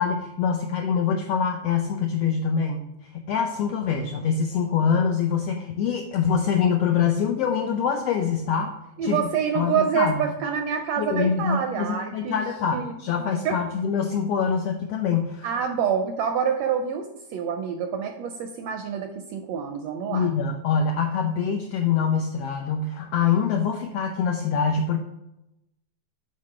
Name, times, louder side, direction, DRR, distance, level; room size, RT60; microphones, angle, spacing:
voice 1, 0.0-8.7 9.0-9.3 9.5-10.3 11.0-15.5 20.1-25.0, left 6 dB, 85° left, 4 dB, 1.3 m, -24 dB
voice 2, 9.0-12.4 12.7-12.9 13.4-13.6 15.4-20.3, right 7 dB, 80° right, 5 dB, 1.5 m, -27 dB
7.6 x 4.2 x 4.9 m, 0.90 s
omnidirectional pair, 3.4 m